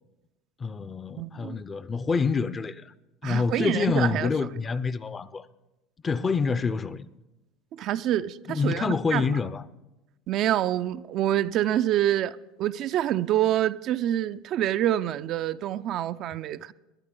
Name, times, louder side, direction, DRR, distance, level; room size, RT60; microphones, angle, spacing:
voice 1, 0.6-2.9 3.2-5.5 6.0-7.1 8.5-9.6, left 5 dB, 25° left, 0.5 m, -27 dB
voice 2, 1.2-1.6 3.2-4.3 7.7-9.3 10.3-16.7, right 12 dB, 55° right, 0.4 m, -26 dB
20.5 x 9.9 x 3.8 m
supercardioid pair, 95°, 0 cm